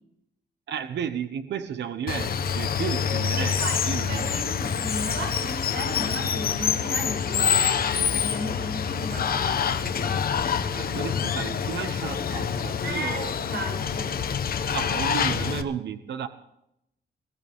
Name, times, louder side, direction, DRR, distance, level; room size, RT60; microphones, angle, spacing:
voice 1, 0.7-4.3 10.7-13.5 14.7-16.3, right 8 dB, 90° right, 10 dB, 1.1 m, -33 dB
Water, 2.1-15.6, left 7 dB, 55° left, 1.2 m, -26 dB
voice 2, 3.4-10.2 12.8-14.2 14.8-14.9, right 1 dB, 70° right, 1 dB, 7.9 m, -35 dB
22.5 x 16.0 x 3.6 m, 0.80 s
wide cardioid pair, 150°, 18 cm